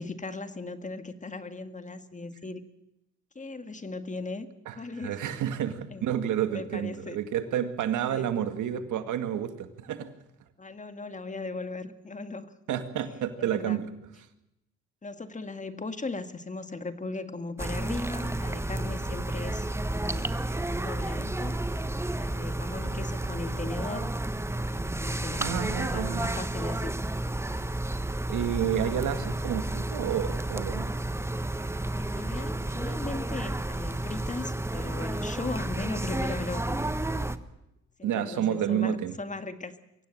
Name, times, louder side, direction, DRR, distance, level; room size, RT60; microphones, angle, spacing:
voice 1, 0.0-2.6 3.4-5.2 5.9-6.1 6.5-7.2 8.1-8.3 10.6-12.5 13.4-13.8 15.0-21.5 22.1-24.1 24.6-26.9 32.0-36.9 38.0-39.8, left 3 dB, 25° left, 10 dB, 1.8 m, -38 dB
voice 2, 5.0-10.1 12.7-13.9 25.4-26.3 28.3-30.9 38.0-39.1, right 10 dB, 80° right, 9 dB, 2.1 m, -30 dB
sound 1, 17.6-37.4, right 1 dB, 10° right, 1.2 m, -31 dB
24.0 x 16.5 x 9.0 m, 0.88 s
cardioid pair, 90°, 30 cm